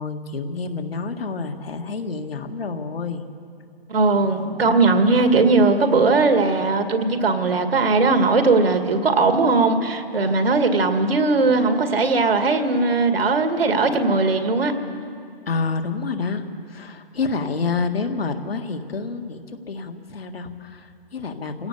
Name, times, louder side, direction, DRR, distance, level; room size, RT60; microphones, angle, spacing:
voice 1, 0.0-3.2 15.5-21.7, left 4 dB, 80° left, 5 dB, 1.9 m, -28 dB
voice 2, 3.9-14.7, right 3 dB, 80° right, 6 dB, 2.2 m, -19 dB
25.0 x 17.0 x 6.8 m, 2.4 s
hypercardioid pair, 155°, 29 cm